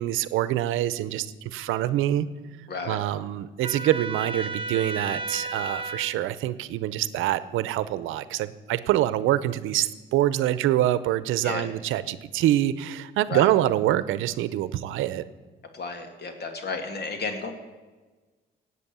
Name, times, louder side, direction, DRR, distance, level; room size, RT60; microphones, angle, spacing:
voice 1, 0.0-2.3 2.9-15.2, right 13 dB, 90° right, 15 dB, 0.7 m, -25 dB
voice 2, 2.7-3.0 11.4-11.7 13.3-13.5 15.7-17.5, left 4 dB, 55° left, 6 dB, 2.3 m, -32 dB
Trumpet, 3.6-6.1, right 3 dB, 25° right, 1.2 m, -33 dB
18.0 x 8.3 x 6.8 m, 1.3 s
cardioid pair, 90°, 20 cm